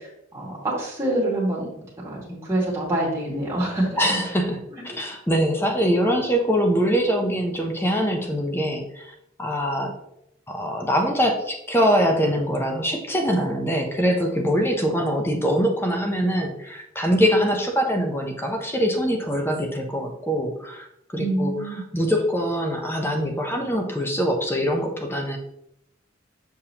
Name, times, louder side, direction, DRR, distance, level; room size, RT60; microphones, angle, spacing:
voice 1, 0.3-1.6 2.0-3.9 21.2-21.8, right 1 dB, 15° right, -5 dB, 2.1 m, -25 dB
voice 2, 4.0-9.1 9.4-9.9 10.5-20.9 21.1-25.4, equal, 10° left, 2 dB, 0.7 m, -23 dB
6.8 x 5.5 x 2.8 m, 0.79 s
head